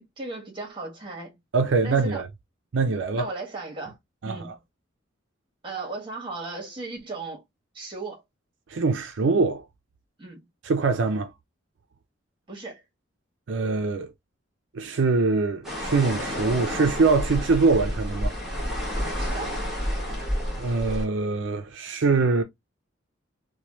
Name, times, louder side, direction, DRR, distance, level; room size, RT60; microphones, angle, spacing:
voice 1, 0.0-1.4 1.8-2.2 3.1-4.0 4.3-4.6 5.6-7.4 7.7-8.2 10.2-10.4 12.5-12.8 19.2-19.6, right 3 dB, 25° right, 1.2 m, -36 dB
voice 2, 1.5-2.3 2.7-3.3 4.2-4.4 8.7-9.6 10.6-11.3 13.5-14.1 14.7-18.3 20.6-22.4, right 4 dB, 70° right, 0.4 m, -23 dB
sound 1, 15.6-21.1, equal, ahead, 1.2 m, -30 dB
3.0 x 2.2 x 2.9 m
head